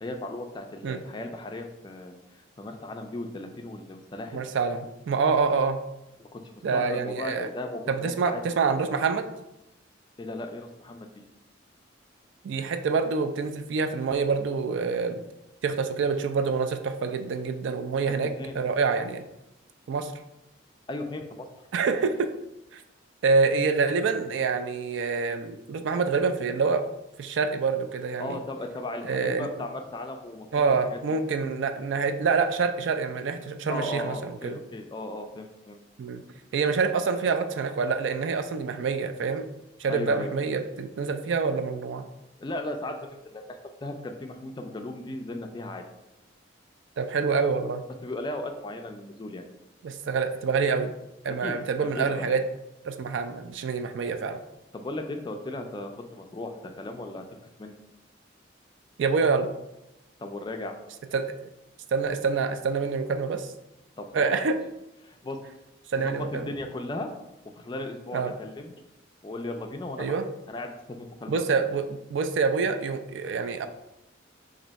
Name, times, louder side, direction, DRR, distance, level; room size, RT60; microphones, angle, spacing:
voice 1, 0.0-2.2 2.6-4.4 6.2-8.4 10.2-11.1 18.1-18.6 20.9-21.5 28.2-30.6 33.7-35.8 39.9-40.3 42.4-45.8 48.0-49.4 51.4-51.6 52.0-52.3 54.7-57.2 57.6-57.8 60.2-60.7 64.0-64.6 65.0-65.4 66.0-67.1 67.6-68.7 69.2-70.2 70.5-71.4, left 2 dB, 25° left, 4 dB, 0.3 m, -36 dB
voice 2, 4.3-5.8 6.6-7.5 7.9-9.3 12.4-15.2 15.6-18.3 18.5-19.3 19.9-20.1 21.7-22.3 22.7-22.8 23.2-26.8 27.2-28.4 29.0-29.5 30.5-34.5 36.0-36.2 36.5-39.5 39.8-42.1 47.0-47.8 49.8-50.9 51.2-52.4 52.9-54.4 59.0-59.5 61.1-61.5 61.9-63.5 64.1-64.6 65.9-66.5 68.1-68.3 70.0-70.3 71.3-73.7, right 5 dB, 70° right, 8 dB, 0.3 m, -26 dB
3.2 x 2.6 x 4.0 m, 0.91 s
head